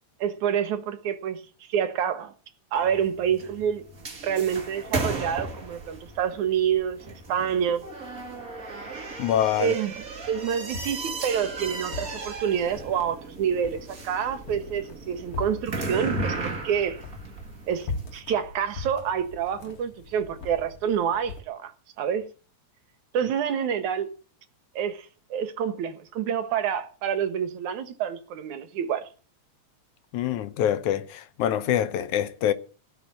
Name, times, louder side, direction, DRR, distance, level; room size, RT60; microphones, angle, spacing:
voice 1, 0.2-2.3 2.7-3.8 4.2-7.8 9.6-17.0 17.7-21.7 22.0-22.3 23.1-24.1 24.8-29.1, right 8 dB, 75° right, 2.7 m, -28 dB
sound 1, 2.8-18.2, right 3 dB, 30° right, 2.4 m, -36 dB
voice 2, 9.2-9.8 30.1-32.5, left 10 dB, 75° left, 2.4 m, -25 dB
sound 2, 10.7-21.4, left 4 dB, 50° left, 3.1 m, -41 dB
17.0 x 6.3 x 8.7 m
omnidirectional pair, 3.5 m